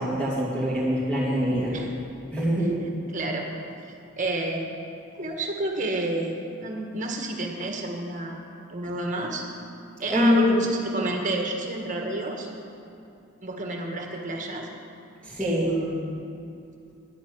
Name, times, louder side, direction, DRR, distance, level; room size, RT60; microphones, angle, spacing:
voice 1, 0.0-1.8 2.3-2.7 10.1-10.7 15.2-15.7, left 1 dB, 5° left, -11 dB, 2.5 m, -23 dB
voice 2, 2.8-3.5 4.2-4.8 5.2-8.4 8.7-9.4 10.0-12.5 13.4-14.7 15.4-16.2, right 2 dB, 35° right, 1 dB, 1.7 m, -30 dB
11.0 x 8.4 x 9.6 m, 2.6 s
head